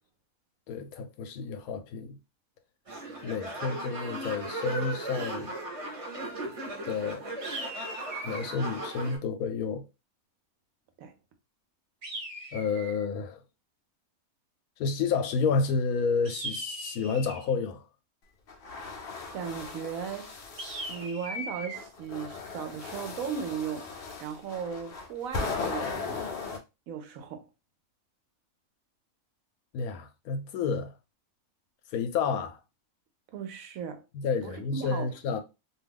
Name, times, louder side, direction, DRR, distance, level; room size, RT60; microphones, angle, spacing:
voice 1, 0.7-2.2 3.2-5.5 6.9-7.2 8.2-9.8 12.5-13.4 14.8-17.8 29.7-30.9 31.9-32.6 34.1-35.4, left 5 dB, 85° left, 1.1 m, -30 dB
sound 1, 2.9-9.2, right 2 dB, 30° right, 0.8 m, -37 dB
sound 2, 7.4-8.6 12.0-13.0 16.2-17.5 20.6-21.8, right 1 dB, 50° right, 1.0 m, -39 dB
sound 3, 18.5-21.1 21.7-26.6, left 4 dB, 55° left, 0.7 m, -37 dB
voice 2, 19.3-20.4 20.9-26.3 26.9-27.5 33.3-34.0 34.4-35.3, right 7 dB, 75° right, 1.0 m, -37 dB
2.6 x 2.3 x 3.4 m
omnidirectional pair, 1.5 m